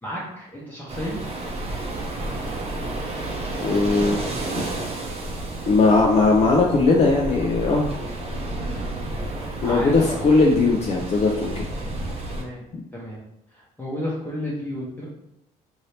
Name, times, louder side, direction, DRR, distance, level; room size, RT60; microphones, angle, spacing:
voice 1, 0.0-1.2 8.6-9.0 9.6-10.2 12.3-12.6 12.9-13.2 13.5-15.0, equal, 10° left, -6 dB, 0.8 m, -32 dB
sound 1, 0.9-12.4, right 2 dB, 35° right, 0.7 m, -31 dB
voice 2, 3.6-4.2 4.6-4.7 5.7-7.9 9.6-11.6 12.7-12.8, left 3 dB, 40° left, -2 dB, 0.5 m, -19 dB
2.8 x 2.7 x 3.2 m, 0.84 s
cardioid pair, 110°, 17 cm